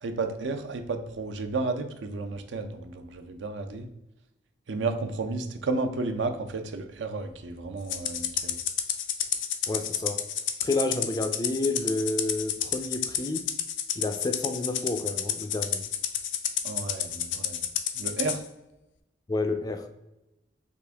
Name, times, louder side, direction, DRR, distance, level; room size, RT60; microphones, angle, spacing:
voice 1, 0.0-3.9 4.7-8.6 16.6-17.6 17.9-18.4, right 3 dB, 80° right, 7 dB, 0.5 m, -32 dB
Rattle (instrument), 7.9-18.4, left 9 dB, 90° left, 0.4 m, -30 dB
voice 2, 9.7-10.2 10.6-13.5 14.0-15.9 19.3-19.9, left 2 dB, 20° left, 7 dB, 0.3 m, -30 dB
4.9 x 2.5 x 3.4 m, 0.93 s
head